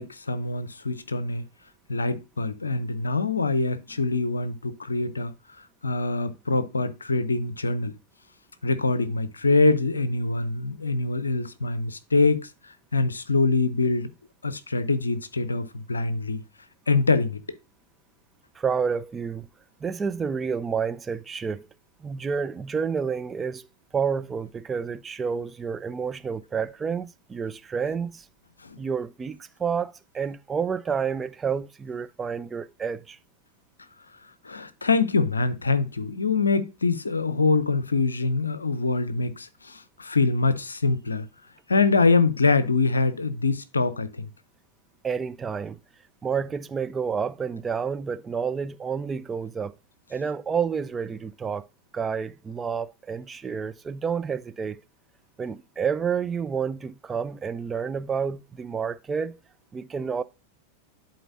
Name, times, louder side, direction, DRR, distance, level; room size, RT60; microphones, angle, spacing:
voice 1, 0.0-1.4 1.9-5.3 5.8-7.9 8.6-14.1 14.4-16.4 16.9-17.4 28.6-28.8 34.4-41.3 41.7-44.3, left 3 dB, 75° left, 0.6 m, -24 dB
voice 2, 18.6-19.5 19.8-21.7 22.0-23.6 23.9-28.3 28.8-33.2 45.0-45.8 46.2-49.7 50.1-51.7 51.9-54.8 55.4-59.4 59.7-60.2, right 6 dB, 20° right, 0.4 m, -29 dB
11.0 x 4.3 x 2.6 m
figure-of-eight pair, 90°, 0 cm